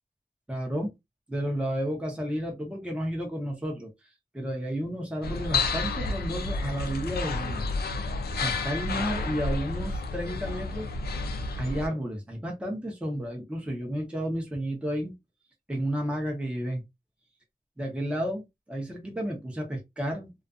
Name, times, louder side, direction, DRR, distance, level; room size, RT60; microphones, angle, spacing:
voice 1, 0.5-0.9 1.3-3.9 4.3-7.7 8.3-10.9 11.5-15.2 15.7-16.8 17.8-20.3, equal, 5° right, 0.7 m, -32 dB
sound 1, 5.2-11.9, left 3 dB, 85° left, 0.4 m, -30 dB
2.4 x 2.4 x 2.4 m
wide cardioid pair, 165°, 16 cm